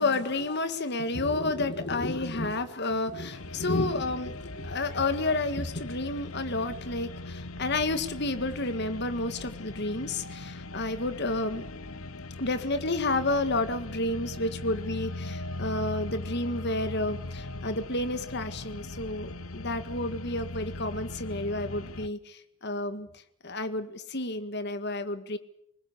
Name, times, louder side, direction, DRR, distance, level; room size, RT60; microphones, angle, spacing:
voice 1, 0.0-11.7 12.4-25.4, left 2 dB, 55° left, 10 dB, 2.0 m, -30 dB
sound 1, 3.3-22.1, left 2 dB, 80° left, 1.1 m, -40 dB
25.5 x 20.5 x 8.2 m, 0.72 s
head